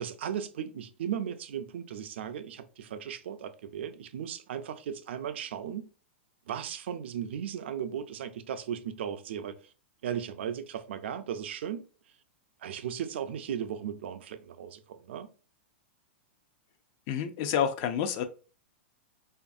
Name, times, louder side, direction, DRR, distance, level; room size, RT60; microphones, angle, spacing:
voice 1, 0.0-5.9 6.5-9.7 10.0-11.9 12.6-15.3, right 9 dB, 70° right, 0.4 m, -36 dB
voice 2, 17.1-18.2, left 8 dB, 45° left, 0.4 m, -28 dB
2.6 x 2.4 x 2.5 m
hypercardioid pair, 125°, 6 cm